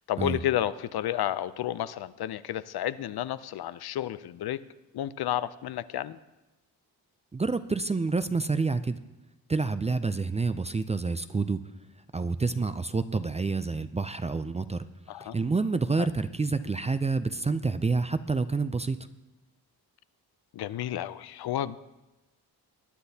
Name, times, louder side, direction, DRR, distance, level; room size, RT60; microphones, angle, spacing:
voice 1, 0.1-4.6 4.9-6.2 15.1-15.4 16.0-16.1 20.5-21.8, left 12 dB, 70° left, 15 dB, 0.5 m, -31 dB
voice 2, 7.3-9.0 9.5-11.6 12.1-14.8 15.2-19.0, right 4 dB, 20° right, 11 dB, 0.3 m, -28 dB
20.0 x 10.0 x 2.8 m, 1.0 s
cardioid pair, 85°, 40 cm